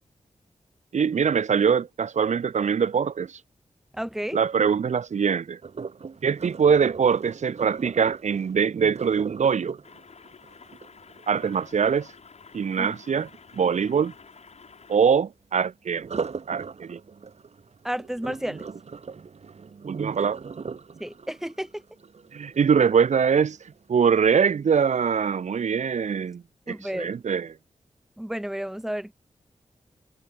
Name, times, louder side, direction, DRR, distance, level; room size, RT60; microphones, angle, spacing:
voice 1, 0.9-3.4 4.3-5.6 6.2-9.8 11.3-12.1 12.5-13.3 13.5-14.1 14.9-16.1 16.5-17.0 19.9-20.4 22.3-23.6 23.9-27.5, right 6 dB, 80° right, 1.1 m, -23 dB
voice 2, 3.9-4.4 12.8-12.9 17.8-18.7 21.0-21.8 26.7-27.1 28.2-29.1, equal, 5° right, 1.0 m, -32 dB
Sink (filling or washing), 5.6-11.6 15.9-23.0 23.5-23.8 24.3-24.4, right 5 dB, 65° right, 4.7 m, -38 dB
sound 1, 9.8-15.0, left 5 dB, 65° left, 6.2 m, -50 dB
wide cardioid pair, 145°, 12 cm